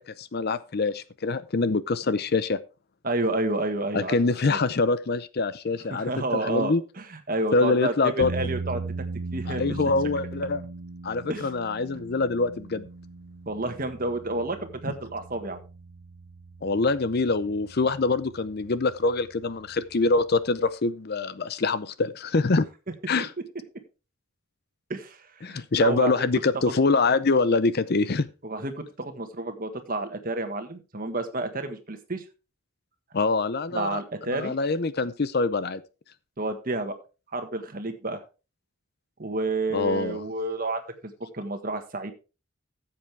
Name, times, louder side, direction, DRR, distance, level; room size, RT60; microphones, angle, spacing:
voice 1, 0.0-2.6 3.9-6.1 6.4-6.8 7.5-8.3 9.5-10.6 11.0-12.8 16.6-22.7 23.1-23.3 25.4-28.3 33.1-34.0 34.3-35.8 39.7-40.2, left 3 dB, 45° left, 15 dB, 0.5 m, -25 dB
voice 2, 3.0-4.6 5.9-8.8 9.3-9.6 11.3-11.5 13.4-15.6 24.9-26.1 26.5-26.7 28.4-32.2 33.7-34.5 36.4-37.0 37.3-38.2 39.2-42.1, right 2 dB, 40° right, 7 dB, 1.5 m, -30 dB
sound 1, 8.2-20.7, right 3 dB, 75° right, 0.6 m, -39 dB
14.0 x 7.6 x 3.4 m, 0.31 s
head